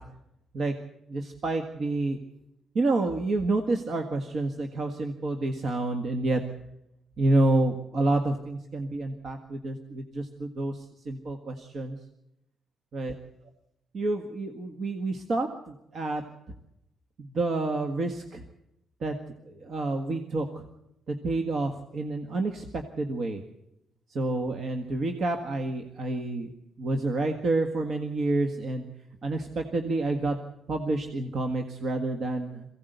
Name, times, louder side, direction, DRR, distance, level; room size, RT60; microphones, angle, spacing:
voice 1, 1.1-2.2 2.8-6.4 7.2-12.0 12.9-13.1 13.9-16.2 17.2-18.4 19.0-19.2 19.5-20.6 21.1-23.4 24.1-26.5 26.8-28.9 29.2-30.4 30.7-32.7, right 2 dB, 55° right, 5 dB, 1.7 m, -28 dB
22.5 x 16.5 x 8.1 m, 0.84 s
cardioid pair, 90°, 0 cm